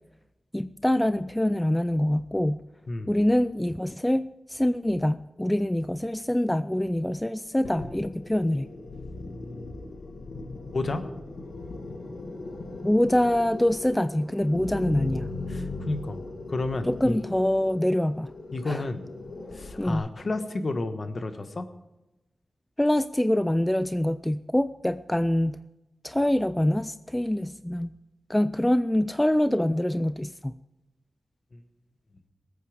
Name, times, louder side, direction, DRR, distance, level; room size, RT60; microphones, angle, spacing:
voice 1, 0.5-2.6 3.1-8.7 12.8-15.3 16.9-18.3 18.7-18.8 19.8-20.0 22.8-25.6 26.0-27.9 28.3-30.5, left 1 dB, 10° left, 13 dB, 0.3 m, -25 dB
sound 1, 7.6-20.0, left 2 dB, 90° left, 1.9 m, -38 dB
voice 2, 10.7-11.1 15.5-17.2 18.5-19.1 19.5-21.6 31.5-31.6, left 2 dB, 50° left, 8 dB, 1.2 m, -31 dB
19.5 x 8.6 x 4.9 m, 0.99 s
wide cardioid pair, 75°, 0 cm